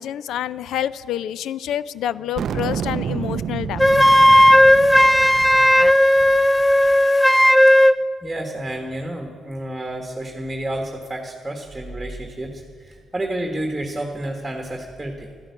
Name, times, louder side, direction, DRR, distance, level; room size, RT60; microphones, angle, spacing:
voice 1, 0.0-3.8, left 11 dB, 80° left, 18 dB, 0.4 m, -27 dB
sound 1, 2.3-7.0, right 8 dB, 65° right, 0.4 m, -30 dB
Wind instrument woodwind instrument, 3.8-8.0, equal, 15° left, 0.6 m, -14 dB
voice 2, 8.2-15.3, right 1 dB, 10° right, 3 dB, 1.5 m, -30 dB
12.0 x 11.0 x 8.3 m, 2.1 s
cardioid pair, 90°, 0 cm